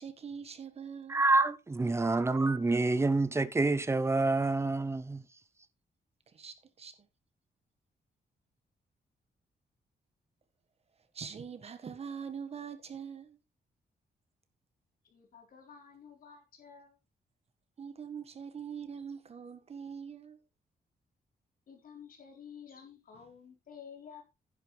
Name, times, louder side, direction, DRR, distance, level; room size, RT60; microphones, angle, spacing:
voice 1, 0.0-1.2 6.3-6.9 11.1-13.4 17.8-20.4, right 7 dB, 40° right, 1.6 m, -43 dB
voice 2, 1.1-5.2, right 2 dB, 15° right, 0.7 m, -27 dB
voice 3, 15.1-17.0 21.7-24.2, left 7 dB, 60° left, 3.9 m, -51 dB
11.0 x 9.5 x 3.3 m
wide cardioid pair, 170°, 16 cm